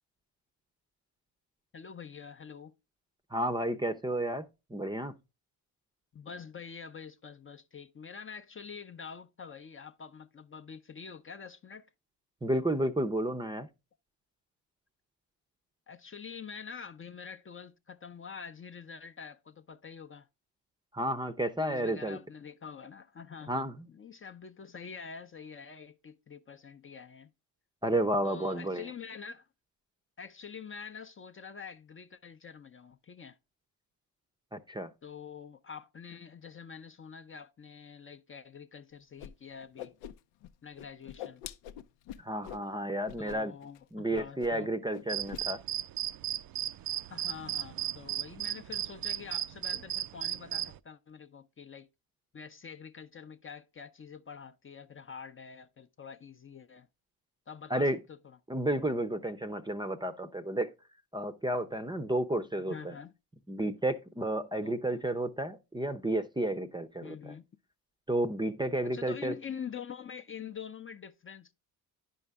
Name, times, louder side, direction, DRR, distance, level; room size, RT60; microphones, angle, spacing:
voice 1, 1.7-2.7 6.1-11.9 15.9-20.3 21.6-27.3 28.2-29.5 30.2-33.4 35.0-39.9 40.6-41.4 43.2-44.7 47.1-51.9 52.3-56.9 57.5-58.4 62.7-63.1 64.6-65.0 67.0-67.5 68.8-71.5, left 6 dB, 30° left, 0.6 m, -46 dB
voice 2, 3.3-4.4 4.7-5.1 12.4-13.7 20.9-22.2 23.5-23.9 27.8-28.9 34.5-34.9 42.2-43.5 43.9-45.6 57.7-58.0 58.5-60.7 61.1-62.9 63.5-67.3 68.1-69.3, right 1 dB, 10° right, 0.6 m, -31 dB
Whoosh swoosh swish, 39.2-39.3 39.6-40.5 40.8-42.6 43.0-43.4 43.6-43.8 44.1-44.6 44.9-45.4, left 10 dB, 80° left, 0.6 m, -44 dB
sound 1, 45.1-50.8, right 12 dB, 55° right, 0.5 m, -35 dB
10.0 x 5.5 x 3.5 m
supercardioid pair, 70°, 42 cm